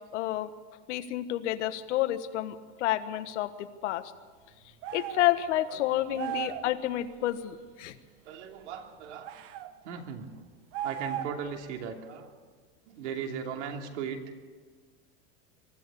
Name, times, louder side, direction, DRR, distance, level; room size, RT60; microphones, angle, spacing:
voice 1, 0.1-0.5 0.9-4.1 4.9-8.0, left 13 dB, 80° left, 11 dB, 1.4 m, -30 dB
sound 1, 4.8-5.3 6.1-6.7 9.2-9.7 10.7-11.5, right 11 dB, 40° right, 1.1 m, -36 dB
voice 2, 6.3-6.7 8.2-9.3 9.8-10.3 10.8-12.3 12.9-14.2, right 7 dB, 80° right, 3 dB, 3.0 m, -38 dB
23.5 x 13.5 x 8.4 m, 1.5 s
supercardioid pair, 160°, 35 cm